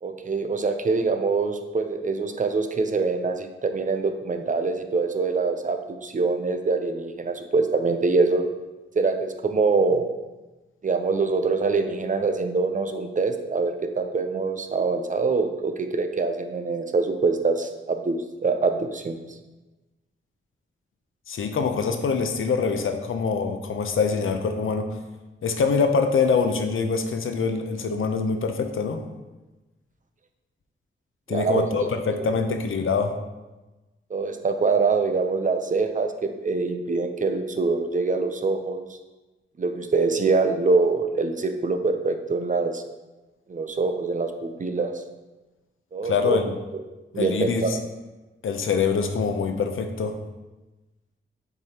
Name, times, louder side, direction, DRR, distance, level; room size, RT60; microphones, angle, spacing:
voice 1, 0.0-8.4 9.0-10.0 10.8-19.2 31.3-31.7 32.2-32.3 34.1-38.8 39.6-42.8 43.5-45.0 45.9-46.4 46.7-46.8 47.1-47.8, right 4 dB, 40° right, 6 dB, 0.6 m, -24 dB
voice 2, 21.3-25.0 25.4-29.0 31.3-33.2 46.0-46.5 47.2-47.8 48.4-50.2, left 5 dB, 80° left, 6 dB, 0.7 m, -24 dB
7.4 x 4.9 x 2.9 m, 1.1 s
wide cardioid pair, 100°, 21 cm